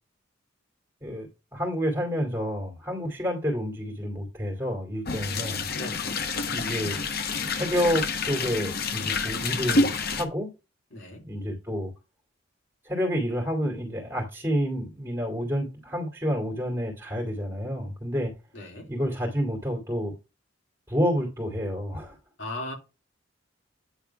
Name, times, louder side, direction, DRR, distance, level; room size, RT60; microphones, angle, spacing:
voice 1, 1.5-5.7 6.5-7.1 7.4-10.5 11.2-11.9 12.8-18.3 18.9-20.1 20.9-22.2, equal, 15° right, 2.3 m, -29 dB
sound 1, 5.1-10.3, left 3 dB, 50° left, 1.0 m, -28 dB
voice 2, 5.7-6.3 10.9-11.2 18.5-18.9 22.4-22.7, left 2 dB, 75° left, 3.0 m, -37 dB
9.1 x 3.6 x 5.7 m
head